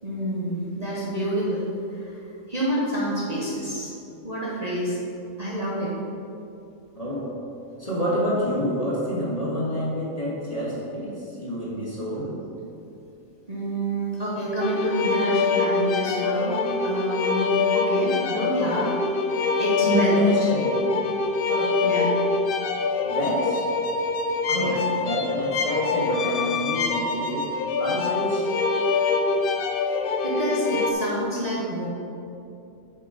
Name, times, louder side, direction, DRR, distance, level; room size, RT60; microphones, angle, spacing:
voice 1, 0.0-1.6 1.9-3.9 4.2-5.0 5.4-5.9 7.7-7.8 13.5-18.9 19.3-20.2 21.8-22.1 24.5-24.8 29.7-31.9, right 1 dB, 30° right, -7 dB, 1.2 m, -28 dB
voice 2, 6.9-7.3 7.8-12.4 19.8-20.8 21.5-21.9 23.0-23.6 24.5-27.5 27.8-28.5, equal, 30° left, -7 dB, 1.5 m, -27 dB
Summer - Violin Clean, 14.6-30.9, left 4 dB, 60° left, 0.6 m, -24 dB
7.9 x 4.6 x 4.9 m, 2.7 s
omnidirectional pair, 1.4 m